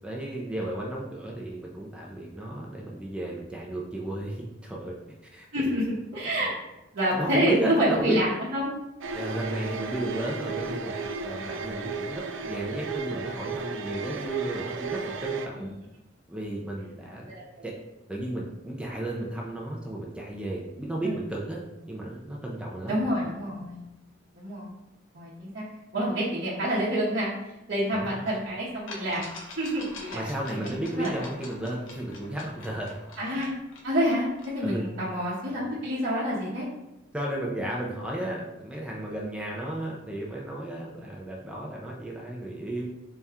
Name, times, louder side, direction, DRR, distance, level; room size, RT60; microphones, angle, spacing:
voice 1, 0.0-4.9 5.3-5.8 6.4-6.5 7.1-8.2 9.1-15.7 16.3-17.3 17.6-17.7 18.1-21.6 21.9-23.0 27.9-28.2 30.1-33.0 34.6-34.8 37.1-42.8, right 1 dB, 5° right, -3 dB, 0.4 m, -34 dB
voice 2, 5.5-6.6 6.9-8.7 15.6-15.7 17.2-17.7 21.0-21.1 22.9-23.8 24.3-24.7 25.1-25.6 25.9-29.2 29.6-31.3 33.2-33.5 33.8-36.7, equal, 55° right, -10 dB, 0.9 m, -28 dB
sound 1, 9.0-15.5, right 4 dB, 70° right, 0.4 m, -34 dB
sound 2, 28.3-28.4 28.9-34.6, left 2 dB, 80° left, 0.7 m, -45 dB
4.1 x 2.3 x 3.5 m, 0.94 s
head